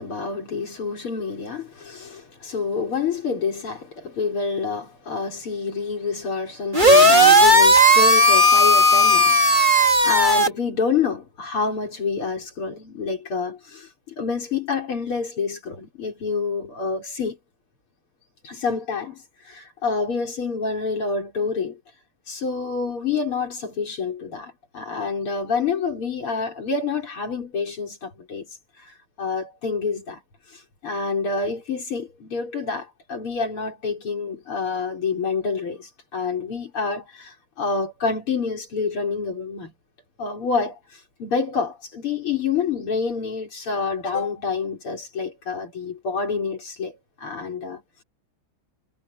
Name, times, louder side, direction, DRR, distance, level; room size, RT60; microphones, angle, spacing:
voice 1, 0.0-17.4 18.4-21.8 22.3-28.5 28.8-30.2 30.5-39.7 40.2-48.0, left 5 dB, 90° left, 5.9 m, -28 dB
sound 1, 6.7-10.5, equal, 20° right, 4.2 m, -14 dB
omnidirectional pair, 2.3 m